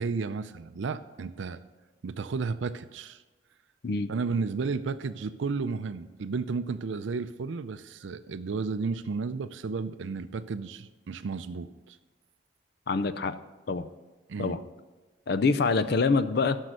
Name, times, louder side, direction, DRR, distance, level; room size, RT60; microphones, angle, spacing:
voice 1, 0.0-1.6 2.0-3.2 4.1-12.0 14.3-14.6, right 4 dB, 75° right, 11 dB, 0.4 m, -33 dB
voice 2, 12.9-13.4 13.7-13.9 14.4-14.6 15.3-16.6, left 4 dB, 55° left, 13 dB, 0.5 m, -25 dB
12.0 x 6.4 x 6.3 m, 1.2 s
head